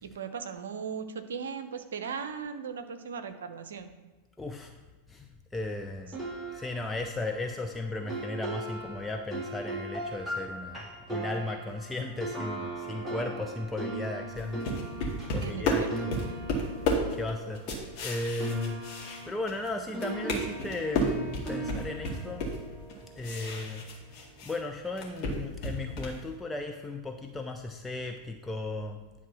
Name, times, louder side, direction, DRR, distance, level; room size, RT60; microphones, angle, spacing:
voice 1, 0.0-3.9 15.4-15.9, right 6 dB, 65° right, 8 dB, 0.8 m, -38 dB
voice 2, 4.4-4.8 5.1-6.2 6.5-14.6 15.3-16.2 16.8-17.7 18.0-18.8 19.2-22.5 23.2-23.8 24.4-29.0, left 2 dB, 10° left, 3 dB, 0.5 m, -36 dB
sound 1, 6.1-18.1 18.4-23.6, right 2 dB, 5° right, 1.9 m, -39 dB
sound 2, 14.3-19.7 19.9-24.6 24.9-26.2, left 1 dB, 40° left, 2.0 m, -32 dB
10.5 x 3.6 x 5.9 m, 1.3 s
figure-of-eight pair, 90°, 0 cm